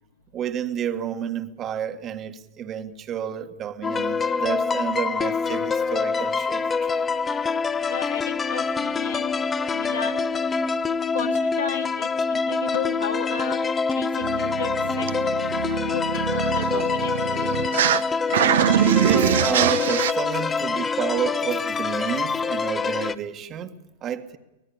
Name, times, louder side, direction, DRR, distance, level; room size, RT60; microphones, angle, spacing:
voice 1, 0.3-6.9 19.0-24.4, right 9 dB, 30° right, 1.6 m, -30 dB
sound 1, 3.8-23.2, left 5 dB, 20° left, 0.9 m, -25 dB
voice 2, 7.9-9.3 9.7-10.3 11.1-13.6 13.9-15.1 15.9-17.7, left 7 dB, 75° left, 2.3 m, -33 dB
sound 2, 14.2-18.0 18.3-20.1, right 10 dB, 65° right, 0.9 m, -23 dB
24.0 x 19.5 x 7.0 m
figure-of-eight pair, 95°, 0 cm